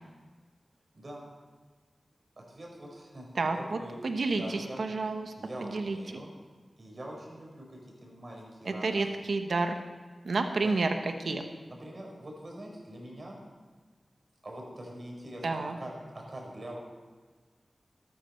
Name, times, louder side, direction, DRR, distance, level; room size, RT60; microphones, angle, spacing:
voice 1, 0.9-1.3 2.4-3.3 3.6-4.8 5.4-6.3 6.8-9.0 10.6-10.7 11.7-13.4 14.4-16.8, right 1 dB, 50° right, -1 dB, 4.7 m, -44 dB
voice 2, 3.3-5.3 5.6-6.0 8.6-9.8 10.2-11.5 15.4-15.8, right 3 dB, 80° right, 6 dB, 1.1 m, -30 dB
13.0 x 13.0 x 4.4 m, 1.4 s
wide cardioid pair, 55°, 0 cm